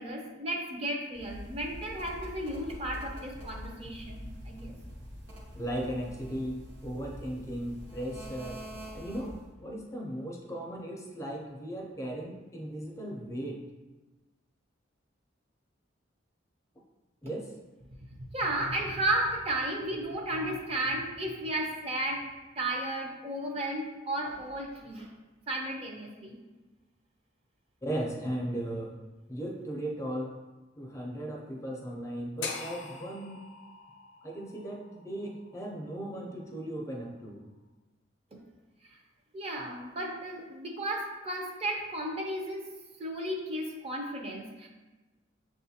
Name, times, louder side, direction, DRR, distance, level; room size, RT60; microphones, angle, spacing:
voice 1, 0.0-4.8 18.2-22.2 22.6-25.1 25.5-26.4 38.9-39.0 39.3-42.7 43.0-44.7, right 1 dB, 30° right, 0 dB, 0.5 m, -34 dB
sound 1, 1.1-9.5, equal, 65° right, 0.9 m, -45 dB
voice 2, 5.5-8.6 8.9-13.6 17.2-17.5 27.8-28.9 29.3-30.3 30.8-33.4 34.2-37.4, right 1 dB, 15° left, -1 dB, 0.5 m, -37 dB
sound 2, 32.4-36.5, left 4 dB, 75° left, 0.5 m, -43 dB
6.3 x 2.4 x 2.7 m, 1.2 s
head